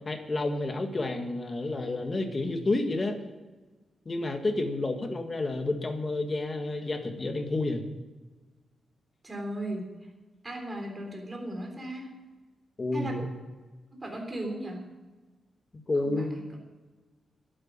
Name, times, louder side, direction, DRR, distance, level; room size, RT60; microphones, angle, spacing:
voice 1, 0.0-3.2 4.0-7.8 12.8-13.3 15.9-16.3, left 2 dB, 30° left, 5 dB, 1.6 m, -30 dB
voice 2, 9.2-9.9 10.4-12.1 12.9-13.3 13.9-14.8 16.0-16.3, right 1 dB, 20° right, 2 dB, 3.7 m, -36 dB
11.5 x 9.1 x 8.7 m, 1.2 s
wide cardioid pair, 125°, 0 cm